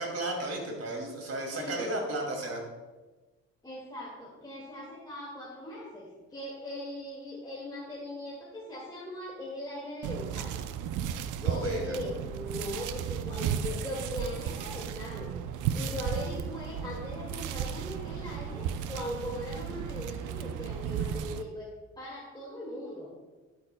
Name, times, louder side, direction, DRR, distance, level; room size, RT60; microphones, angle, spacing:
voice 1, 0.0-2.6 11.4-11.9, right 2 dB, 55° right, 1 dB, 2.6 m, -34 dB
voice 2, 1.5-2.0 3.6-10.6 11.4-15.3 15.7-23.1, left 1 dB, 15° left, -5 dB, 2.1 m, -39 dB
sound 1, 10.0-21.4, right 8 dB, 80° right, 0.5 m, -34 dB
11.0 x 8.6 x 2.2 m, 1.2 s
cardioid pair, 90°, 30 cm